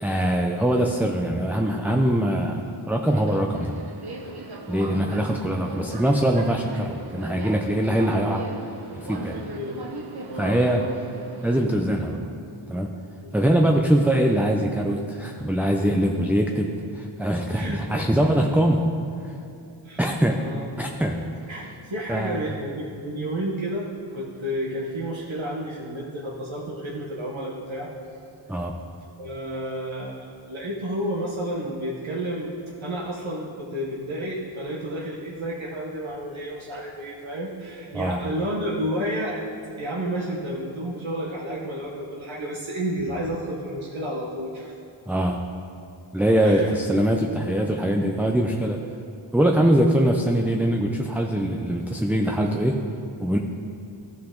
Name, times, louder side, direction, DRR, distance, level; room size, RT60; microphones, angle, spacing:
voice 1, 0.0-3.8 4.7-8.4 8.9-9.4 10.3-10.8 11.4-12.3 12.7-12.9 13.3-18.9 19.2-19.3 20.0-20.4 20.8-21.3 22.1-22.5 28.5-28.7 37.9-38.2 45.1-45.4 46.1-48.8 49.3-52.8 53.2-53.4, right 1 dB, 5° right, 1 dB, 0.5 m, -22 dB
Subway metro underground, 2.1-11.6, right 2 dB, 55° right, 0.9 m, -39 dB
voice 2, 4.7-5.3 9.2-9.8 10.3-10.9 13.2-13.6 17.5-18.0 19.8-20.0 20.4-20.9 21.5-27.9 29.2-32.5 32.8-39.4 39.8-44.7 46.4-46.7, right 1 dB, 75° right, -5 dB, 1.3 m, -31 dB
14.0 x 5.8 x 3.8 m, 2.5 s
wide cardioid pair, 65°, 48 cm